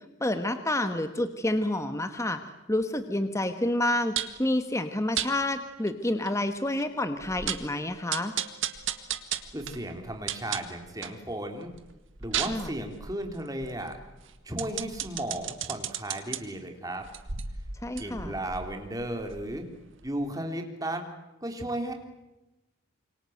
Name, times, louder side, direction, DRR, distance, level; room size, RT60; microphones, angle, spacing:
voice 1, 0.2-2.4 2.7-8.3 12.5-12.7 17.8-18.3, left 1 dB, 15° left, 9 dB, 1.3 m, -29 dB
sound 1, 4.2-4.4 5.2-5.3 5.9-6.0 6.3-6.4 6.8-6.9 7.2-7.7 8.1-11.2 11.6-16.4 17.0-19.7 20.0-20.1, right 9 dB, 65° right, 1.8 m, -35 dB
voice 2, 9.5-11.7 12.2-14.0 14.4-17.1 18.0-19.7 20.0-21.0 21.4-21.9, right 1 dB, 15° right, 4 dB, 3.3 m, -34 dB
27.5 x 24.5 x 7.9 m, 1.0 s
head